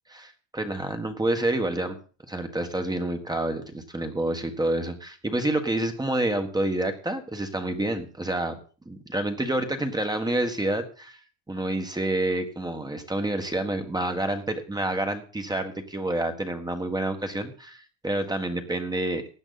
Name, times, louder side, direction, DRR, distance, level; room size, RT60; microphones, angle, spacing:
voice 1, 0.1-2.0 2.3-8.5 8.8-11.2 11.5-19.2, right 1 dB, 10° right, 6 dB, 1.5 m, -28 dB
16.5 x 9.9 x 4.1 m, 0.37 s
cardioid pair, 140°, 45 cm